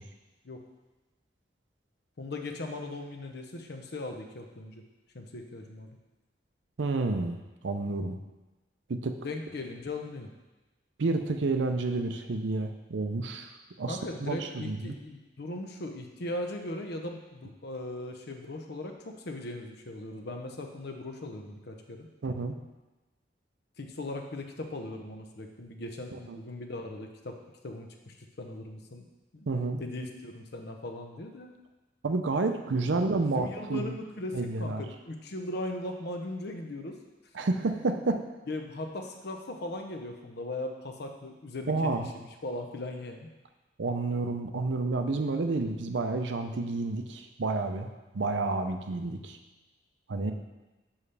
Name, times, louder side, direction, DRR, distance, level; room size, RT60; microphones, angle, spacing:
voice 1, 2.2-4.8 5.1-6.0 9.2-10.3 13.9-22.1 23.8-27.4 27.6-29.1 29.3-29.5 29.8-31.5 32.8-32.9 33.3-37.0 38.5-43.3, left 2 dB, 60° left, 4 dB, 0.8 m, -39 dB
voice 2, 6.8-7.4 7.6-8.2 8.9-9.2 11.0-13.5 13.8-14.9 22.2-22.6 26.1-26.4 29.5-29.8 32.0-33.9 34.3-34.8 37.3-38.2 41.7-42.1 43.8-47.9 48.1-49.4 50.1-50.3, right 3 dB, 75° right, 6 dB, 0.6 m, -30 dB
7.2 x 5.6 x 3.3 m, 1.1 s
head